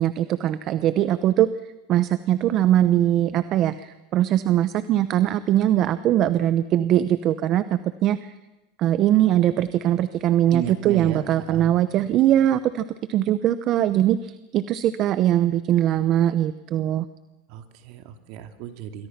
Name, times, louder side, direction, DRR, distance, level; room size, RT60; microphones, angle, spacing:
voice 1, 0.0-1.5 1.9-8.3 8.8-12.8 13.1-17.0, right 12 dB, 40° right, 14 dB, 0.8 m, -21 dB
voice 2, 10.5-11.8 17.5-19.1, right 9 dB, 55° right, 7 dB, 2.5 m, -34 dB
27.5 x 22.5 x 5.9 m, 1.1 s
supercardioid pair, 130°, 0 cm